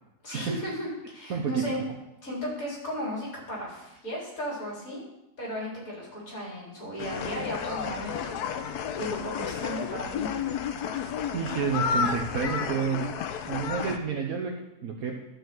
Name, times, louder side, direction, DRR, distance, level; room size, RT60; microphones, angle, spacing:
voice 1, 0.2-1.8 2.2-5.1 5.4-8.6 9.0-10.3, equal, 60° left, -4 dB, 4.4 m, -35 dB
voice 2, 1.3-1.6 11.3-13.1 13.5-14.6 14.8-15.2, right 6 dB, 65° right, -1 dB, 1.4 m, -29 dB
sound 1, 7.0-14.0, left 7 dB, 80° left, 1.3 m, -31 dB
12.0 x 4.9 x 7.8 m, 0.92 s
omnidirectional pair, 1.7 m